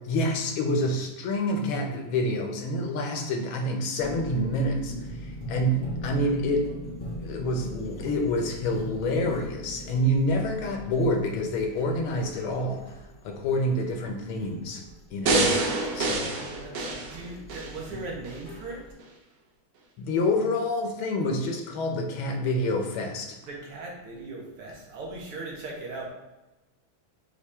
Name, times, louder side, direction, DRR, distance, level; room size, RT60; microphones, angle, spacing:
voice 1, 0.1-6.7 7.2-12.8 13.2-14.8 15.1-15.6 15.9-16.3 20.0-23.4, left 1 dB, 75° left, 3 dB, 1.4 m, -27 dB
sound 1, 4.0-18.9, equal, 45° left, 0.5 m, -40 dB
sound 2, 15.3-17.7 18.2-18.4, right 2 dB, 65° right, 0.9 m, -26 dB
voice 2, 16.0-18.8 23.5-26.1, right 2 dB, 85° right, -1 dB, 2.0 m, -39 dB
5.8 x 2.6 x 3.4 m, 1.0 s
omnidirectional pair, 2.4 m